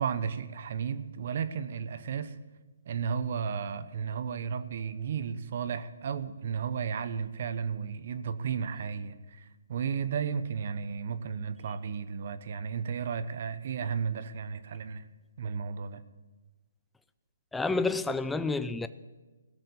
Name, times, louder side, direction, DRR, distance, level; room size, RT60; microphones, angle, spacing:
voice 1, 0.0-2.3 2.9-15.1 15.4-16.0, right 6 dB, 55° right, 0.9 m, -33 dB
voice 2, 17.5-18.9, left 3 dB, 5° left, 0.4 m, -29 dB
16.5 x 6.6 x 8.4 m
hypercardioid pair, 145°, 0 cm